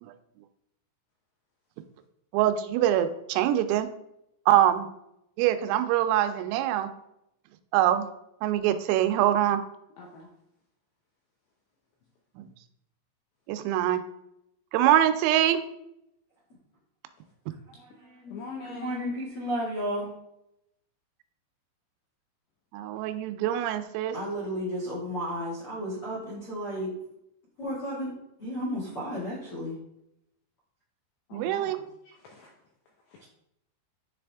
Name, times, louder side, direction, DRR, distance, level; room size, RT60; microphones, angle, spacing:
voice 1, 2.3-3.9 4.5-4.9 5.4-6.9 7.7-8.1 8.4-9.6 12.4-12.5 13.5-14.0 14.7-15.6 22.7-24.2 31.3-31.8, right 12 dB, 90° right, 9 dB, 3.2 m, -24 dB
voice 2, 10.0-10.3 18.3-19.0 31.3-31.7 32.1-32.5 33.1-33.2, left 5 dB, 80° left, -1 dB, 2.4 m, -43 dB
voice 3, 17.7-18.4 18.7-20.1 24.1-26.9 27.6-28.1 28.4-29.8, equal, 65° left, -6 dB, 1.3 m, -33 dB
10.0 x 3.4 x 3.3 m, 0.80 s
omnidirectional pair, 5.8 m